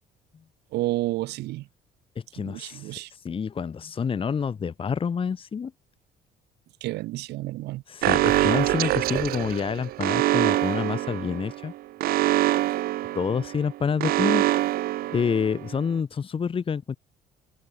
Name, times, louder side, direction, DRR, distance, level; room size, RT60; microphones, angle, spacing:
voice 1, 0.7-1.6 2.4-3.1 6.8-7.8, right 18 dB, 80° right, 1.3 m, -30 dB
voice 2, 2.1-5.7 7.9-11.7 12.7-12.8 13.1-14.7 15.1-17.0, left 6 dB, 30° left, 1.5 m, -28 dB
Alarm, 8.0-15.8, right 15 dB, 65° right, 0.5 m, -25 dB
cardioid pair, 110°, 17 cm